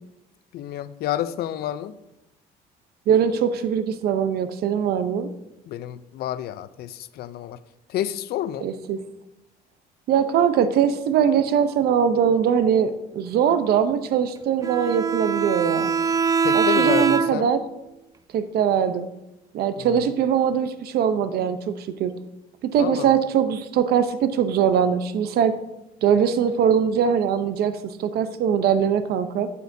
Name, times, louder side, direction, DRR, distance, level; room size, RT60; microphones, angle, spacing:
voice 1, 0.5-2.0 5.7-7.6 7.9-8.7 16.4-17.5 19.8-20.1 22.8-23.2, left 11 dB, 65° left, 14 dB, 0.5 m, -29 dB
voice 2, 3.1-5.3 8.6-9.0 10.1-15.9 16.5-17.6 18.3-19.1 19.5-22.1 22.6-25.6 26.0-29.5, right 8 dB, 70° right, 11 dB, 0.7 m, -21 dB
Bowed string instrument, 14.6-17.6, right 5 dB, 20° right, 0.4 m, -22 dB
12.5 x 8.4 x 2.7 m, 0.94 s
cardioid pair, 110°, 17 cm